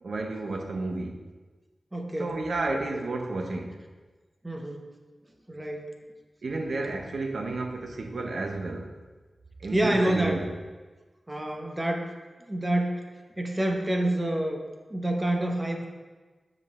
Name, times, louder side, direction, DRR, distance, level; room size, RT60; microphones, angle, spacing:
voice 1, 0.0-1.2 2.2-3.8 6.4-8.9 9.6-10.5, right 2 dB, 75° right, 4 dB, 0.7 m, -31 dB
voice 2, 1.9-2.4 2.9-3.0 4.4-4.9 5.5-6.0 9.7-10.4 11.3-12.1 12.5-13.0 13.4-14.6 14.9-15.9, right 1 dB, 25° right, 2 dB, 0.9 m, -27 dB
6.3 x 5.3 x 3.6 m, 1.3 s
cardioid pair, 45°, 0 cm